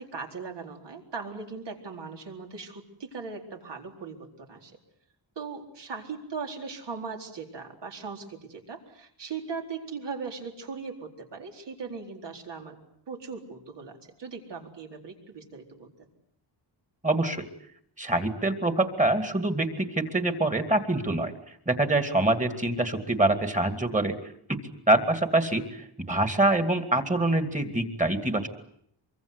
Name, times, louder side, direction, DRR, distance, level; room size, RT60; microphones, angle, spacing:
voice 1, 0.0-4.7 5.4-12.8 13.1-15.9, right 5 dB, 65° right, 2 dB, 4.3 m, -39 dB
voice 2, 17.0-17.5 18.0-21.3 21.7-24.1 24.9-28.5, right 2 dB, 15° right, 7 dB, 2.4 m, -25 dB
24.5 x 24.0 x 8.1 m, 0.70 s
wide cardioid pair, 150°, 44 cm